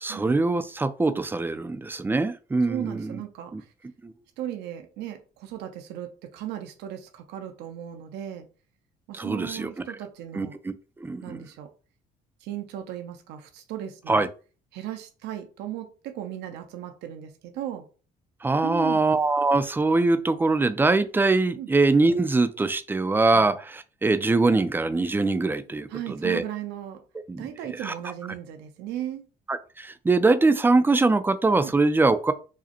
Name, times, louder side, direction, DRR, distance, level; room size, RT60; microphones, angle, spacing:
voice 1, 0.0-3.2 3.5-3.6 4.0-4.1 9.1-9.7 10.4-10.7 11.0-11.4 14.1-14.3 18.4-25.9 26.2-26.4 27.3-27.4 27.8-27.9 29.5-32.3, right 3 dB, 10° right, 0.4 m, -23 dB
voice 2, 2.7-3.7 4.4-8.5 9.1-10.6 11.2-11.7 12.4-14.3 14.7-17.9 18.6-19.0 21.6-21.7 25.9-27.0 27.4-29.2 31.6-31.7, right 11 dB, 85° right, 0.7 m, -36 dB
4.8 x 2.1 x 2.9 m
cardioid pair, 110°, 17 cm